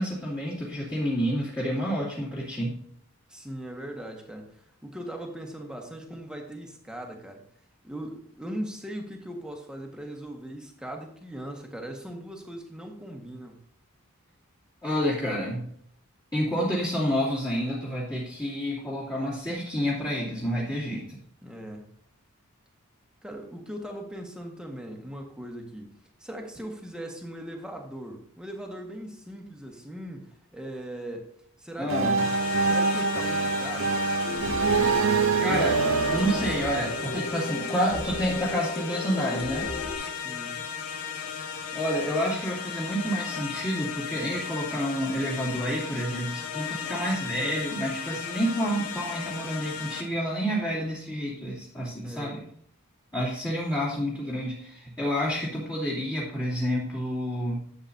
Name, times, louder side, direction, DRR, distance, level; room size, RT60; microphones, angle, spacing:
voice 1, 0.0-2.8 14.8-15.7 16.3-21.2 31.8-32.2 35.4-35.8 36.1-39.7 41.7-52.4 53.1-57.7, equal, 15° left, -10 dB, 2.6 m, -29 dB
voice 2, 3.3-7.4 7.8-13.6 21.4-21.8 23.2-25.9 26.2-31.3 31.6-32.3 32.6-34.1 40.1-40.6 52.0-52.4, right 1 dB, 5° right, 1 dB, 1.5 m, -39 dB
sound 1, 31.9-37.6, right 4 dB, 65° right, 0.8 m, -25 dB
sound 2, 32.2-50.0, left 7 dB, 90° left, 1.7 m, -36 dB
sound 3, 34.2-40.0, left 2 dB, 65° left, 2.6 m, -36 dB
12.5 x 7.9 x 2.7 m, 0.64 s
head